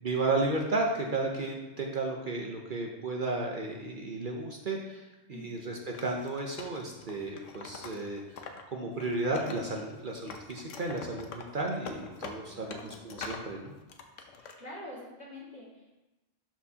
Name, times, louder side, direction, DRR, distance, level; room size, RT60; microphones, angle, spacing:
voice 1, 0.0-8.4 8.7-13.7, right 2 dB, 45° right, 0 dB, 0.8 m, -33 dB
voice 2, 5.3-5.7 12.5-13.1 14.3-15.9, left 1 dB, 60° left, -7 dB, 2.5 m, -47 dB
Wood, 5.9-8.6 8.9-10.0 10.3-13.5 13.9-14.6, left 5 dB, 85° left, 1.1 m, -44 dB
11.5 x 4.4 x 2.8 m, 1.0 s
omnidirectional pair, 1.3 m